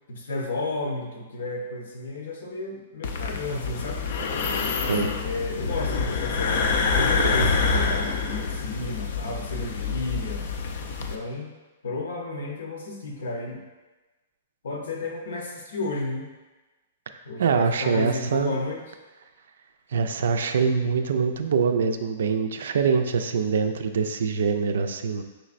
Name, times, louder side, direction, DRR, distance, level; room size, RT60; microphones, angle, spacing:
voice 1, 0.1-4.1 4.9-10.4 11.1-11.5 11.8-13.6 14.6-16.3 17.2-18.8, left 2 dB, 85° left, 1 dB, 0.8 m, -32 dB
sound 1, 3.0-11.2, left 4 dB, 60° left, 0.4 m, -26 dB
voice 2, 7.2-7.5 17.4-18.6 19.9-25.2, right 5 dB, 75° right, 8 dB, 0.4 m, -24 dB
5.5 x 3.2 x 2.5 m, 1.2 s
hypercardioid pair, 155°, 0 cm